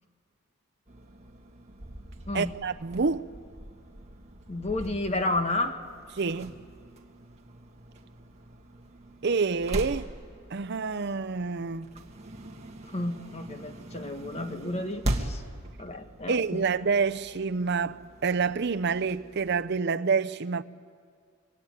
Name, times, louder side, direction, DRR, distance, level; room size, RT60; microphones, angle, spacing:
sound 1, 0.9-19.6, right 1 dB, 30° right, 1.8 m, -41 dB
voice 1, 2.3-3.3 6.2-6.5 9.2-10.1 10.5-11.9 16.3-20.6, right 5 dB, 55° right, 0.6 m, -27 dB
voice 2, 4.5-5.8 12.9-15.4 15.8-16.6, left 2 dB, 30° left, 1.5 m, -31 dB
25.5 x 22.5 x 9.2 m
head